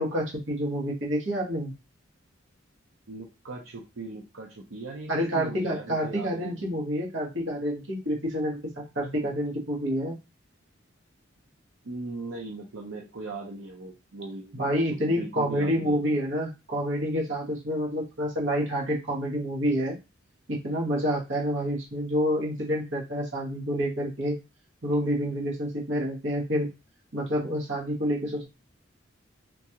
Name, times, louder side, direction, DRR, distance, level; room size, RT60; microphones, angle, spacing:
voice 1, 0.0-1.7 5.1-10.2 14.6-20.0 20.5-24.3 24.8-26.7 27.1-28.5, equal, 70° right, -2 dB, 1.3 m, -28 dB
voice 2, 3.1-6.5 11.8-14.6 15.0-16.0, right 3 dB, 85° right, 0 dB, 0.6 m, -39 dB
3.8 x 2.4 x 2.9 m, 0.28 s
head